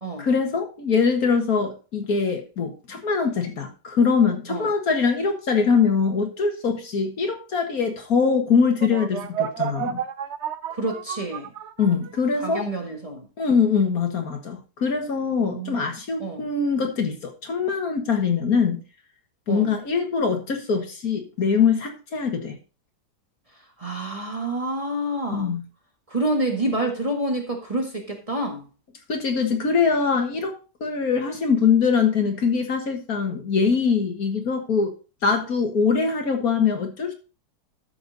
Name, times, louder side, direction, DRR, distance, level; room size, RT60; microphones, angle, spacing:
voice 1, 0.2-10.0 11.8-12.7 13.4-18.8 19.5-22.6 25.3-25.6 29.1-34.9 35.2-37.1, left 5 dB, 60° left, 2.0 m, -23 dB
sound 1, 8.8-12.3, right 9 dB, 55° right, 0.8 m, -31 dB
voice 2, 10.7-11.5 12.4-13.3 15.4-15.9 16.2-16.5 19.5-19.7 23.8-25.5 26.1-28.7, right 1 dB, 20° right, 1.7 m, -28 dB
13.0 x 6.0 x 4.0 m
omnidirectional pair, 1.7 m